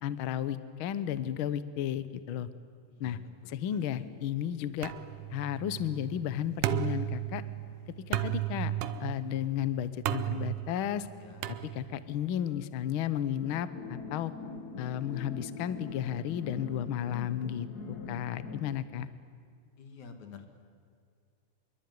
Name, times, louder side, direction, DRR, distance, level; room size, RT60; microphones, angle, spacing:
voice 1, 0.0-2.5 3.0-3.2 3.5-4.9 5.3-7.4 8.1-8.7 9.0-11.1 11.5-14.3 14.8-19.1, left 10 dB, 85° left, 14 dB, 1.1 m, -33 dB
voice 2, 3.7-4.1 11.2-11.5 19.8-20.5, left 5 dB, 60° left, 7 dB, 3.6 m, -49 dB
sound 1, 4.8-12.2, right 13 dB, 75° right, 2.3 m, -35 dB
sound 2, 13.4-18.7, left 4 dB, 40° left, 1.4 m, -43 dB
26.0 x 23.0 x 9.6 m, 2.2 s
omnidirectional pair, 3.9 m